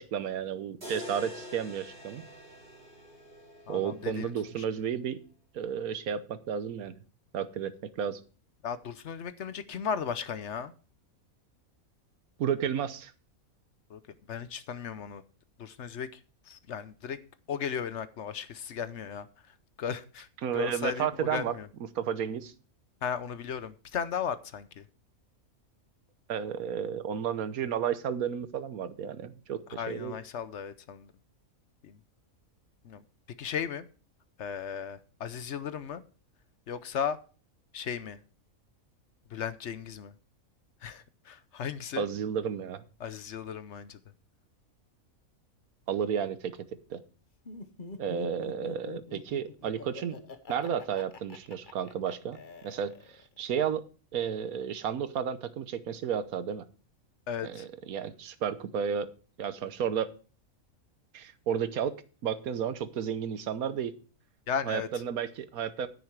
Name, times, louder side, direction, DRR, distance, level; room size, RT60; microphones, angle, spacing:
voice 1, 0.0-2.2 3.7-5.2 5.5-7.0 7.3-8.2 12.4-13.1 20.4-21.5 21.9-22.5 26.3-30.2 42.0-42.8 45.9-46.6 46.9-47.0 48.0-50.2 50.5-52.4 52.6-53.8 54.1-56.6 57.4-59.1 59.4-60.1 61.1-62.0 62.2-63.9 64.6-65.9, right 8 dB, 85° right, 13 dB, 1.4 m, -32 dB
sound 1, 0.8-4.9, equal, 40° right, 4.4 m, -46 dB
voice 2, 3.7-4.3 8.6-10.7 13.9-14.0 14.3-15.2 15.6-16.2 16.5-17.2 17.5-19.3 19.8-20.3 20.5-21.7 23.0-24.8 29.8-31.1 31.8-32.0 32.8-33.0 33.4-33.9 34.4-36.0 36.7-37.2 37.7-38.2 39.3-40.1 40.8-42.0 43.0-44.0 57.3-57.7 64.5-64.9, left 7 dB, 60° left, 13 dB, 0.9 m, -35 dB
Laughter, 47.5-53.4, left 4 dB, 40° left, 1.1 m, -45 dB
9.6 x 9.5 x 4.6 m, 0.37 s
omnidirectional pair, 1.5 m